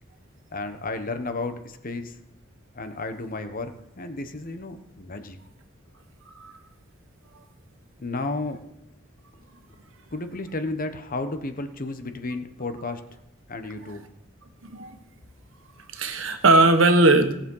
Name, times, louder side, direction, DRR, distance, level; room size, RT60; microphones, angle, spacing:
voice 1, 0.5-2.2 2.7-5.4 8.0-8.6 10.1-13.0 13.5-14.0, left 2 dB, 45° left, 8 dB, 1.1 m, -32 dB
voice 2, 14.6-15.0 15.9-17.3, right 2 dB, 70° right, 7 dB, 1.4 m, -18 dB
17.5 x 7.2 x 5.6 m, 0.84 s
head